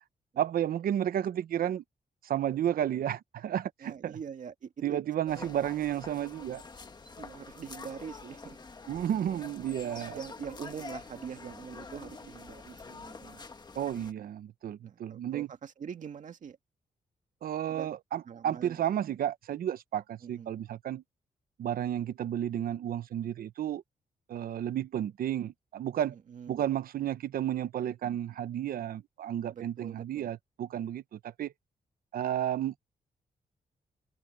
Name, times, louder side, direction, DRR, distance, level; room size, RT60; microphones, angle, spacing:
voice 1, 0.4-1.8 2.2-4.2 4.8-6.6 8.9-10.2 13.7-15.5 17.4-21.0 21.6-23.8 24.3-26.2 26.5-31.5 32.1-32.8, right 10 dB, 80° right, 0.9 m, -32 dB
voice 2, 3.8-5.0 5.3-5.5 7.2-8.6 9.7-13.4 14.8-16.6 17.7-17.9 18.3-18.8 20.2-20.5 26.1-26.6 29.5-30.3, right 7 dB, 60° right, 2.1 m, -44 dB
sound 1, 5.3-14.1, left 4 dB, 30° left, 1.7 m, -47 dB
wide cardioid pair, 125°, 15 cm